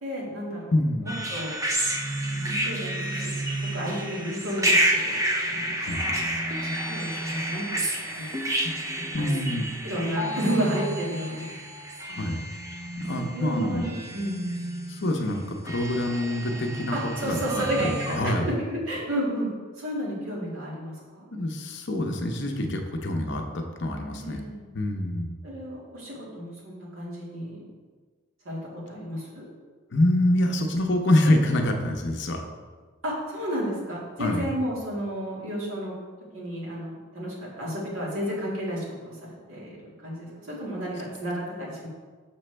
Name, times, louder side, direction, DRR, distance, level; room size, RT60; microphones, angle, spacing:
voice 1, 0.0-0.7 1.0-1.6 2.3-3.5 3.7-5.2 5.5-5.7 6.1-6.2 6.6-8.4 9.2-9.4 9.8-11.5 12.1-12.3 13.1-14.5 16.9-19.5 19.8-21.3 24.2-24.7 25.4-27.6 28.5-29.4 33.0-36.0 36.3-41.9, equal, 80° right, -5 dB, 2.0 m, -32 dB
voice 2, 0.7-1.0 5.8-6.1 9.1-9.7 12.1-12.4 13.0-13.8 14.9-18.5 21.3-24.4 24.7-25.4 28.9-29.0 29.9-32.4 34.2-34.4, left 1 dB, 55° left, 3 dB, 0.7 m, -26 dB
sound 1, 1.1-18.2, right 1 dB, 15° right, 0.5 m, -30 dB
6.2 x 5.9 x 3.3 m, 1.4 s
head